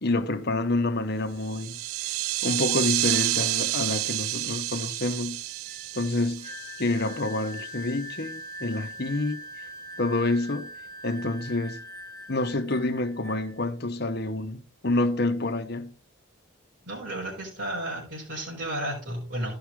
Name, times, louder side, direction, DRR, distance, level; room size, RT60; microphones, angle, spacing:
voice 1, 0.0-1.8 2.4-5.4 5.9-6.5 6.8-9.4 10.0-10.7 11.0-11.8 12.3-15.9, left 2 dB, 50° left, 1.1 m, -28 dB
sound 1, 1.4-7.5, right 17 dB, 90° right, 0.4 m, -29 dB
sound 2, 5.5-13.7, right 2 dB, 5° left, 2.8 m, -47 dB
Wind instrument woodwind instrument, 6.4-12.6, equal, 20° right, 2.9 m, -43 dB
voice 2, 16.8-19.6, right 1 dB, 55° right, 4.2 m, -33 dB
15.0 x 5.9 x 3.7 m
head